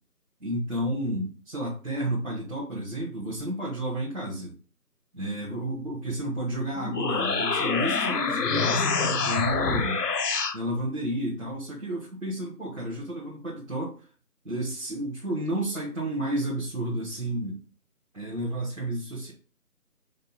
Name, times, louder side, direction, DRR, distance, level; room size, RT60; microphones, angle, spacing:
voice 1, 0.4-4.5 5.1-10.0 10.5-13.9 14.4-17.6 18.1-19.3, right 1 dB, 55° right, -6 dB, 1.6 m, -31 dB
sound 1, 6.8-10.6, left 5 dB, 80° left, 0.7 m, -26 dB
5.2 x 2.2 x 4.0 m, 0.37 s
figure-of-eight pair, 180°, 47 cm